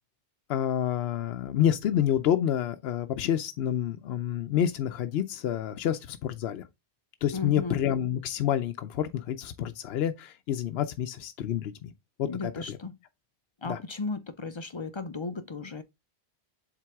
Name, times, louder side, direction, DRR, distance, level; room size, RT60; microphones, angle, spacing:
voice 1, 0.5-6.6 7.2-11.9 12.2-12.8 13.6-13.8, left 10 dB, 75° left, 0.8 m, -28 dB
voice 2, 7.3-7.8 12.2-13.0 13.6-15.8, left 3 dB, 40° left, 0.4 m, -35 dB
7.5 x 3.9 x 3.5 m
omnidirectional pair, 1.1 m